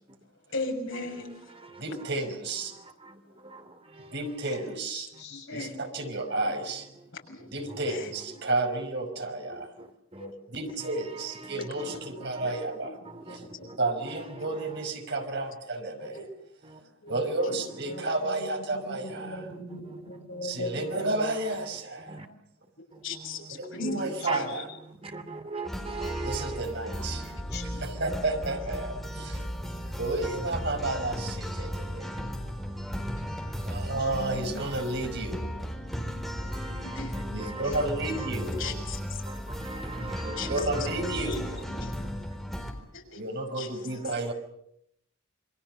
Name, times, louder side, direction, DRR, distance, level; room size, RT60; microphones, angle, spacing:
voice 1, 0.5-1.8 5.3-5.8 7.3-7.5 7.9-8.1 10.2-10.7 11.2-11.3 12.4-12.9 14.2-14.3 16.0-16.3 17.0-17.2 21.4-21.5 23.0-24.5 26.0-26.4 27.3-27.8 33.5-33.8 36.8-37.3 37.6-37.8 38.2-39.2 40.4-40.7 41.0-41.1 41.8-41.9 42.9-43.2 43.5-43.8, left 4 dB, 65° left, 6.5 m, -39 dB
voice 2, 1.8-2.7 4.1-5.1 5.5-6.9 7.5-9.7 10.5-12.9 13.3-13.4 13.8-16.2 17.1-19.4 20.4-22.2 23.6-24.7 26.2-27.3 27.6-29.5 29.8-32.2 33.7-35.6 37.3-38.8 40.2-41.7 43.1-44.3, right 2 dB, 55° right, 5.5 m, -32 dB
voice 3, 4.6-5.5 12.4-12.5 13.0-13.7 17.5-21.0 23.7-23.9 24.3-24.6 27.5-27.8 33.8-34.6 39.9-41.4 41.7-42.2, left 1 dB, 50° left, 6.8 m, -40 dB
voice 4, 25.1-26.6 29.2-29.8 31.9-32.0 33.0-33.9 36.2-36.8 39.6-40.4, right 4 dB, 25° right, 2.7 m, -38 dB
sound 1, 25.6-42.7, equal, ahead, 4.2 m, -35 dB
28.0 x 23.5 x 6.8 m
head